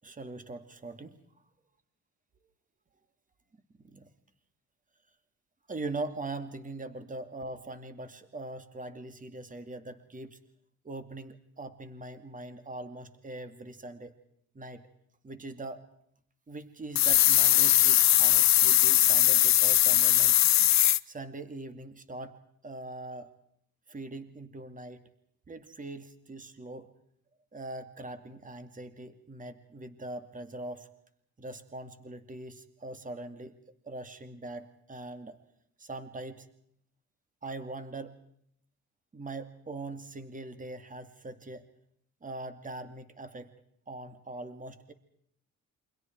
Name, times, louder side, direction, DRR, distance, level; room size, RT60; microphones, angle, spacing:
voice 1, 0.0-1.2 3.8-4.1 5.7-10.4 10.8-14.1 14.5-14.8 15.2-15.8 16.5-20.4 21.1-22.4 22.6-23.3 23.9-25.0 25.5-26.9 27.5-30.9 31.4-33.5 33.9-35.4 35.8-36.5 37.4-38.2 39.1-41.6 42.2-43.5 43.9-44.9, right 2 dB, 25° right, 9 dB, 2.4 m, -41 dB
sound 1, 17.0-21.0, left 13 dB, 65° left, 0.8 m, -21 dB
29.0 x 25.0 x 4.6 m, 0.70 s
cardioid pair, 90°, 30 cm